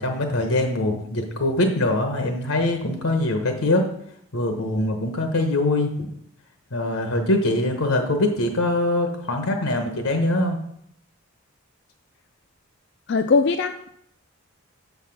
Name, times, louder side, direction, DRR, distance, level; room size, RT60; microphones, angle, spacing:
voice 1, 0.0-3.8 4.3-6.1 6.7-10.6, left 1 dB, 75° left, 5 dB, 1.0 m, -23 dB
voice 2, 13.1-13.9, left 4 dB, 55° left, 7 dB, 0.4 m, -20 dB
7.0 x 5.8 x 5.8 m, 0.72 s
head